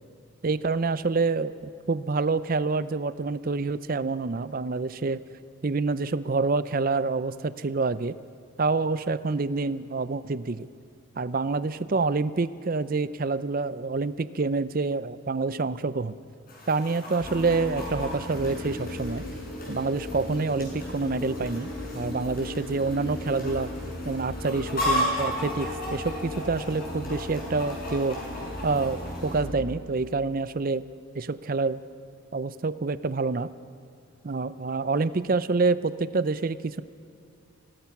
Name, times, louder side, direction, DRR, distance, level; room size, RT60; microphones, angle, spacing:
voice 1, 0.4-5.2 5.6-8.2 8.6-10.7 11.2-16.2 16.7-19.2 19.7-23.7 24.1-28.2 28.6-30.8 31.1-31.8 32.3-33.5 34.2-36.8, right 3 dB, 40° right, 15 dB, 0.5 m, -27 dB
Chicken rooster, 16.5-29.4, left 1 dB, 45° left, 6.6 m, -36 dB
sound 1, 17.2-29.7, left 1 dB, 90° left, 3.4 m, -37 dB
25.0 x 18.0 x 5.9 m, 2.5 s
head